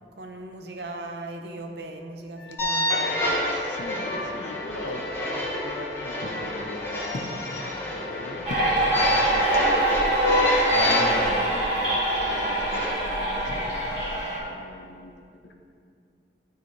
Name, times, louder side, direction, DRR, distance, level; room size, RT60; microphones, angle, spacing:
voice 1, 0.2-3.2, right 2 dB, 65° right, 4 dB, 0.7 m, -38 dB
Wind instrument woodwind instrument, 2.3-14.5, left 4 dB, 50° left, 1.2 m, -44 dB
sound 1, 2.6-12.9, left 1 dB, 15° left, 1.1 m, -27 dB
voice 2, 3.5-10.0 10.7-11.8 12.2-14.1 14.3-15.1, left 1 dB, 90° left, 3 dB, 0.9 m, -39 dB
sound 2, 8.5-14.4, right 2 dB, 35° right, 2.0 m, -25 dB
12.0 x 4.8 x 3.2 m, 2.3 s
head